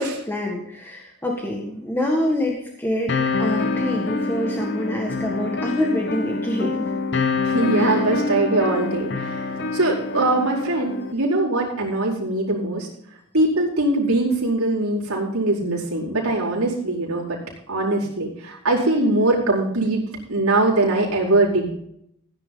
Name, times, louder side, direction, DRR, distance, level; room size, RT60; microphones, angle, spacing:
voice 1, 0.0-6.9 7.7-8.0 9.6-9.7, left 1 dB, 10° left, -1 dB, 1.7 m, -26 dB
sound 1, 3.1-11.1, left 4 dB, 50° left, 1.0 m, -26 dB
voice 2, 7.4-12.9 13.3-17.4 17.7-20.0 20.3-21.7, right 2 dB, 80° right, -4 dB, 4.8 m, -22 dB
16.0 x 10.0 x 3.9 m, 0.73 s
head